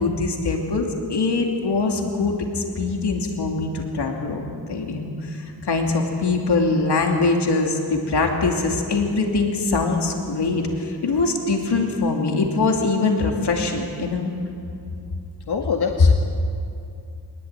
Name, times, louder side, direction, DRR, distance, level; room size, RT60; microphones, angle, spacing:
voice 1, 0.0-14.3, left 3 dB, 85° left, 2 dB, 2.9 m, -23 dB
voice 2, 15.5-16.1, left 5 dB, 70° left, 2 dB, 1.9 m, -24 dB
24.0 x 20.5 x 9.1 m, 2.5 s
wide cardioid pair, 150°, 39 cm